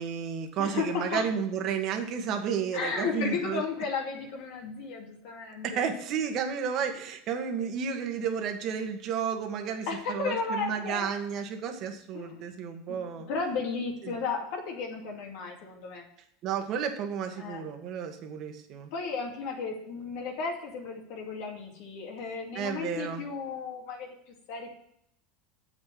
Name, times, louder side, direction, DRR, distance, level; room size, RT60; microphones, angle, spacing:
voice 1, 0.0-3.6 5.6-13.3 14.0-14.1 16.4-18.9 22.5-23.2, right 7 dB, 50° right, 5 dB, 1.7 m, -32 dB
voice 2, 0.6-1.2 2.7-5.9 9.9-11.1 12.1-12.5 12.9-16.0 17.4-17.6 18.9-24.7, left 5 dB, 70° left, 0 dB, 2.5 m, -34 dB
7.7 x 6.4 x 7.6 m, 0.71 s
supercardioid pair, 115°, 0 cm